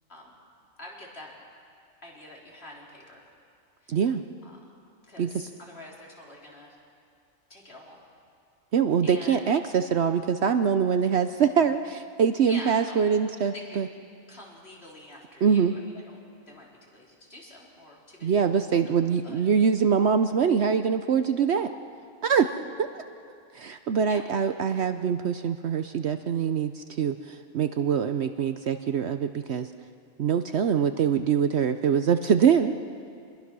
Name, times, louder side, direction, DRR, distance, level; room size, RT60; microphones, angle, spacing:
voice 1, 0.8-1.3 2.0-3.2 3.8-4.0 4.4-4.6 5.1-6.8 7.5-8.0 9.0-9.4 12.5-13.1 13.5-13.8 14.3-16.2 16.5-19.4 22.3-22.7 23.9-24.2, left 1 dB, 50° left, -3 dB, 4.2 m, -46 dB
voice 2, 3.9-4.2 5.2-5.5 8.7-13.9 15.4-15.7 18.2-21.7 22.2-22.5 22.8-23.0 23.5-29.7 30.2-32.7, right 7 dB, 60° right, 9 dB, 0.9 m, -24 dB
26.5 x 21.0 x 6.1 m, 2.4 s
omnidirectional pair, 1.4 m